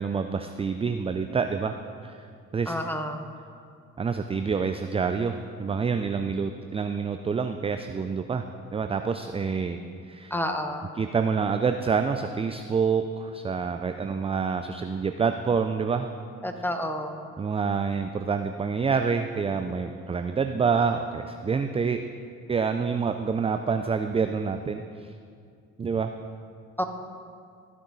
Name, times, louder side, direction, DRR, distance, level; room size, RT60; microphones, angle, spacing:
voice 1, 0.0-1.7 2.0-2.2 2.5-2.7 4.0-8.5 8.7-9.8 10.1-10.3 11.0-16.1 17.4-22.0 22.5-24.8 25.8-26.1, right 5 dB, 15° right, 7 dB, 0.4 m, -27 dB
voice 2, 2.7-3.2 10.3-10.9 16.4-17.2 26.8-26.9, left 1 dB, 5° left, 5 dB, 1.1 m, -29 dB
14.5 x 6.1 x 4.0 m, 2.3 s
hypercardioid pair, 55°, 37 cm